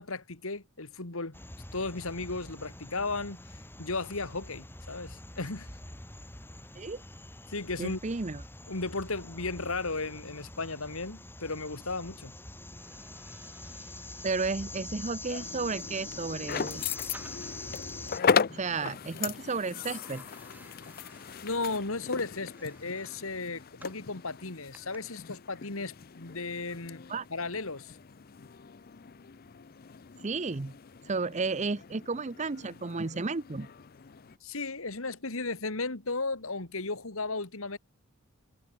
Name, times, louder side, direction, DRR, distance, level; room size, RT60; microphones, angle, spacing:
voice 1, 0.0-1.4 1.7-5.7 7.5-8.0 8.7-12.3 21.4-27.0 27.3-28.0 34.4-37.8, left 3 dB, 65° left, 2.2 m, -35 dB
sound 1, 1.3-18.2, left 2 dB, 10° left, 3.2 m, -45 dB
voice 2, 7.8-8.4 14.2-16.9 18.5-20.2 27.1-27.2 30.2-30.7 31.0-33.7, right 4 dB, 30° right, 0.7 m, -33 dB
sound 2, 12.7-17.8 19.8-24.1 24.7-25.0, right 1 dB, 10° right, 7.3 m, -57 dB
sound 3, 15.2-34.4, left 6 dB, 45° left, 0.5 m, -37 dB
head